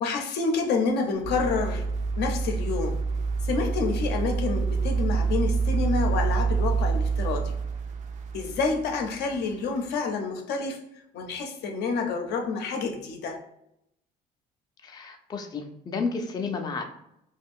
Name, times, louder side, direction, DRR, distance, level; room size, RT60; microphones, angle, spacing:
voice 1, 0.0-1.9 2.2-3.0 3.4-7.5 8.3-10.8 11.1-13.4, left 4 dB, 75° left, 0.6 m, -28 dB
sound 1, 1.2-9.5 9.9-10.0, right 5 dB, 45° right, 0.4 m, -27 dB
voice 2, 14.8-16.8, left 4 dB, 25° left, 0.4 m, -32 dB
2.5 x 2.3 x 3.5 m
cardioid pair, 110°, 17 cm